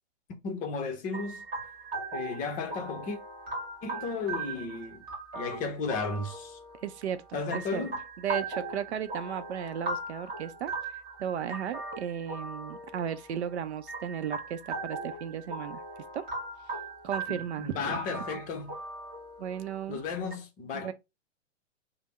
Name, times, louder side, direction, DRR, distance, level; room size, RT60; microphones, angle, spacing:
voice 1, 0.4-1.4 2.1-3.2 3.8-5.0 5.3-6.6 7.3-8.0 17.3-18.8 19.9-20.9, left 4 dB, 25° left, 0.7 m, -34 dB
sound 1, 1.1-20.3, right 3 dB, 25° right, 1.6 m, -39 dB
voice 2, 6.8-7.8 8.2-10.9 11.2-15.8 16.1-16.3 17.0-18.0 19.4-20.0 20.7-20.9, right 9 dB, 65° right, 0.6 m, -35 dB
3.3 x 2.0 x 4.0 m
hypercardioid pair, 115°, 36 cm